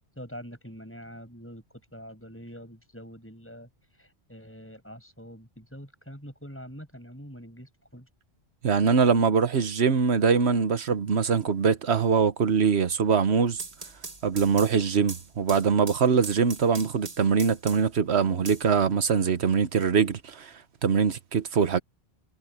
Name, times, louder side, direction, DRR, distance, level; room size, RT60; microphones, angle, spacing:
voice 1, 0.2-1.6 1.9-3.7 4.0-8.1, equal, 10° left, 7.5 m, -44 dB
voice 2, 8.6-13.6 14.2-20.5 20.8-21.8, right 6 dB, 85° right, 1.4 m, -23 dB
sound 1, 13.4-18.0 18.5-19.4, right 3 dB, 35° right, 1.7 m, -42 dB
omnidirectional pair, 1.1 m